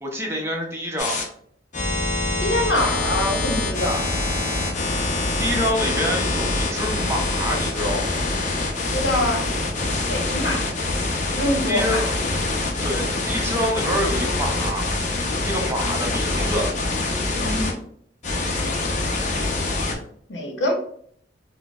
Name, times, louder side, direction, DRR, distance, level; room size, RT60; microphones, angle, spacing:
voice 1, 0.0-1.2 5.0-8.3 11.7-12.1 12.8-14.9 15.5-16.7, equal, 15° right, 0 dB, 0.6 m, -27 dB
sound 1, 1.0-1.2 1.7-17.7 18.2-19.9, left 2 dB, 45° left, 0.6 m, -25 dB
voice 2, 2.4-4.1 8.9-9.5 10.1-10.7 11.4-12.1 17.4-17.7 20.3-20.7, left 1 dB, 80° left, 1 dB, 0.8 m, -24 dB
4.3 x 2.0 x 2.3 m, 0.62 s
head